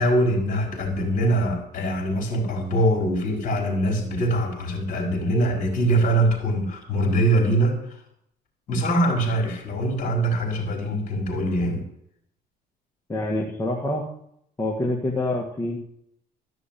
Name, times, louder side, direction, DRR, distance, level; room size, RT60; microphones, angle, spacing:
voice 1, 0.0-8.0 8.7-11.8, right 1 dB, 50° left, 2 dB, 4.9 m, -23 dB
voice 2, 13.1-14.0 14.6-15.8, left 1 dB, 20° left, -1 dB, 1.9 m, -26 dB
13.5 x 6.3 x 9.1 m, 0.73 s
cardioid pair, 110°, 17 cm